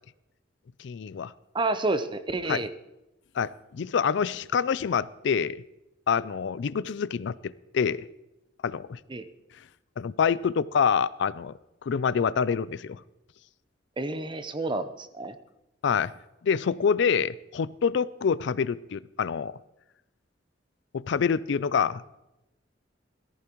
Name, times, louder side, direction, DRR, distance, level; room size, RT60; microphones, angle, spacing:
voice 1, 0.8-1.3 2.5-2.6 3.4-5.6 6.1-8.0 8.6-9.0 10.0-11.5 11.8-13.0 15.8-16.1 16.4-19.5 20.9-22.0, left 6 dB, 70° left, 18 dB, 0.4 m, -26 dB
voice 2, 1.5-2.7 9.1-9.3 14.0-15.4, right 2 dB, 25° right, 11 dB, 0.7 m, -29 dB
17.5 x 14.5 x 3.0 m, 0.95 s
head